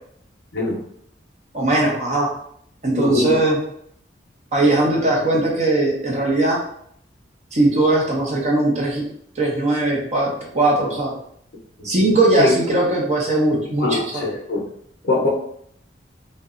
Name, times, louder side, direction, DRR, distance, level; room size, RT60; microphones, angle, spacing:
voice 1, 1.5-2.3 2.8-3.6 4.5-6.6 7.5-9.0 9.4-10.3 10.5-11.1 11.8-14.3, right 2 dB, 40° right, -3 dB, 0.6 m, -19 dB
voice 2, 3.0-3.4 11.8-11.9 12.4-12.5 13.8-14.6 15.0-15.3, left 2 dB, 60° left, -5 dB, 0.5 m, -21 dB
2.8 x 2.1 x 2.4 m, 0.68 s
head